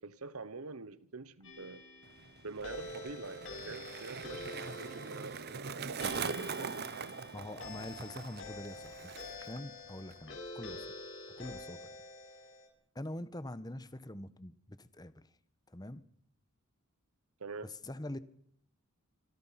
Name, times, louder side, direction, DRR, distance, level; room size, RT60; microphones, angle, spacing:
voice 1, 0.0-1.8 2.4-7.2 17.4-17.7, right 3 dB, 75° right, 1.2 m, -46 dB
sound 1, 1.4-12.7, left 2 dB, 60° left, 7.9 m, -47 dB
Skateboard, 2.0-9.6 9.9-10.4, right 5 dB, 45° right, 0.9 m, -42 dB
voice 2, 7.3-10.9 11.4-11.9 12.9-15.3 15.7-16.0 17.7-18.2, left 1 dB, 20° left, 1.3 m, -44 dB
26.5 x 26.0 x 5.9 m
head